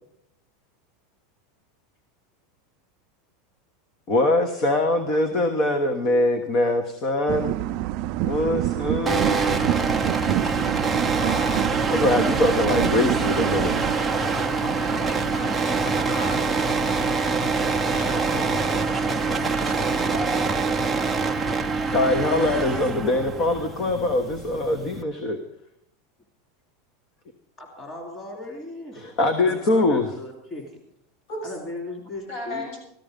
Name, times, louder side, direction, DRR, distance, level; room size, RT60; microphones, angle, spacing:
voice 1, 4.1-7.5 8.2-9.9 11.9-13.7 20.1-20.5 21.9-25.4 29.0-30.1, left 2 dB, 40° left, 8 dB, 1.3 m, -23 dB
sound 1, 7.3-13.9, right 15 dB, 50° right, 0.5 m, -27 dB
sound 2, 9.1-25.0, right 4 dB, 5° right, 0.7 m, -25 dB
voice 2, 11.1-11.7 14.8-16.4 17.4-17.8 31.3-31.4 32.3-32.8, left 1 dB, 65° left, 2 dB, 6.9 m, -36 dB
voice 3, 17.9-21.3 27.6-29.0 29.3-30.7 31.4-32.7, left 1 dB, 20° left, 1 dB, 3.5 m, -38 dB
15.0 x 13.5 x 5.2 m, 0.75 s
supercardioid pair, 150°, 0 cm